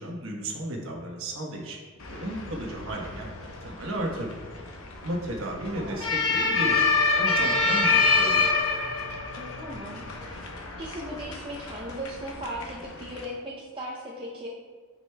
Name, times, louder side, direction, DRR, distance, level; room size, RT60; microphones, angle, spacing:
voice 1, 0.0-1.8 2.1-4.4 5.0-6.9 7.1-8.6, right 1 dB, 65° right, 0 dB, 1.1 m, -34 dB
sound 1, 2.0-13.3, left 3 dB, 70° left, 0.9 m, -27 dB
voice 2, 5.6-6.1 9.4-10.5 10.8-14.5, equal, 25° right, -5 dB, 0.5 m, -38 dB
9.4 x 5.1 x 2.2 m, 1.5 s
head